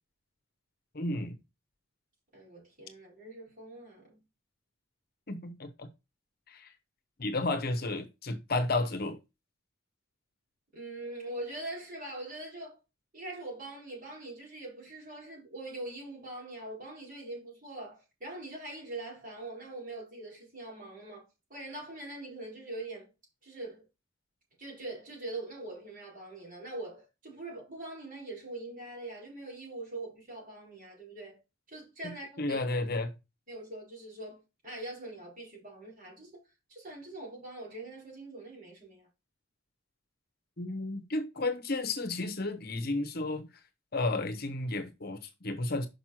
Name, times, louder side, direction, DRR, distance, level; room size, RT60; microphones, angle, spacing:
voice 1, 0.9-1.4 5.3-5.9 6.5-6.7 7.2-9.2 32.0-33.1 40.6-43.5 43.9-45.9, left 2 dB, 50° left, 1.0 m, -32 dB
voice 2, 2.3-4.2 10.7-12.8 13.1-23.1 23.4-23.8 24.6-31.4 31.7-32.6 33.5-36.4 36.7-39.1, right 2 dB, 40° right, 4.6 m, -43 dB
6.2 x 5.4 x 5.8 m
head